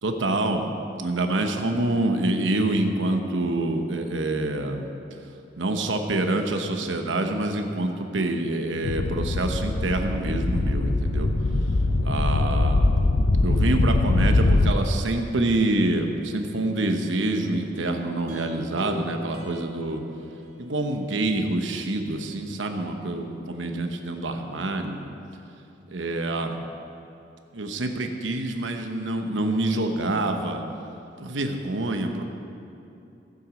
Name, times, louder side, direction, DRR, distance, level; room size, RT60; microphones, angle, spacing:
voice 1, 0.0-0.7 1.0-4.9 5.6-11.3 12.0-12.9 13.4-20.0 20.6-25.0 25.9-26.6 27.5-30.6 31.2-32.2, right 2 dB, 90° right, 5 dB, 1.0 m, -26 dB
sound 1, 8.8-14.7, left 2 dB, 60° left, 0.6 m, -22 dB
sound 2, 17.8-21.1 21.5-21.6, left 1 dB, 55° right, 2.9 m, -40 dB
15.0 x 7.8 x 5.2 m, 2.8 s
head